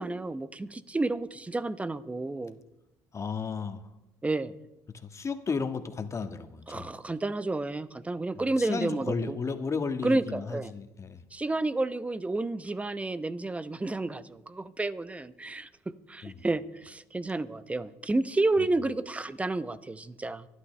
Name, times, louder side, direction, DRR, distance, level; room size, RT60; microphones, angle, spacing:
voice 1, 0.0-2.6 4.2-4.5 6.7-9.4 10.0-10.7 11.3-20.5, right 2 dB, 15° right, 14 dB, 0.8 m, -31 dB
voice 2, 3.1-3.8 4.9-6.9 8.6-11.2 16.2-16.4, left 5 dB, 35° left, 8 dB, 1.5 m, -33 dB
25.0 x 11.5 x 3.3 m, 0.94 s
supercardioid pair, 75°, 9 cm